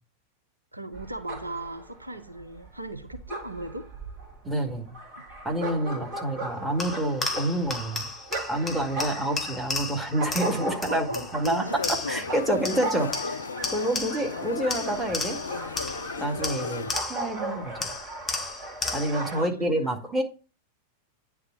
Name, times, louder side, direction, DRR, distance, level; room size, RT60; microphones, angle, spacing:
voice 1, 0.7-3.9 10.9-12.6 19.3-20.0, right 1 dB, 85° right, 0.8 m, -37 dB
sound 1, 0.9-19.4, right 2 dB, 35° right, 3.1 m, -38 dB
voice 2, 4.4-5.0 5.4-8.1 8.5-11.1 11.3-13.4 13.7-15.4 16.2-17.9 18.9-20.2, right 1 dB, 5° right, 2.1 m, -28 dB
sound 2, 6.8-12.3 12.6-14.4 14.7-17.4 17.8-19.3, left 3 dB, 15° left, 1.5 m, -34 dB
sound 3, 11.6-16.9, left 5 dB, 70° left, 0.4 m, -36 dB
9.5 x 3.6 x 6.9 m
figure-of-eight pair, 90°, 0 cm